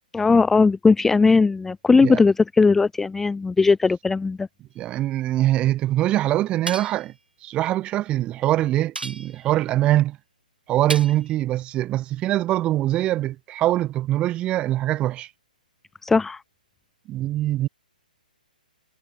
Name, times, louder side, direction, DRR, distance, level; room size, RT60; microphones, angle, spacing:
voice 1, 0.1-4.5 16.0-16.4, left 4 dB, 5° left, 0.4 m, -18 dB
voice 2, 4.8-7.1 7.4-10.2 10.7-15.3 17.1-17.7, right 14 dB, 20° right, 1.3 m, -23 dB
sound 1, 6.7-7.1 8.9-9.6 10.9-11.3, right 3 dB, 85° right, 5.3 m, -33 dB
figure-of-eight pair, 135°, 5 cm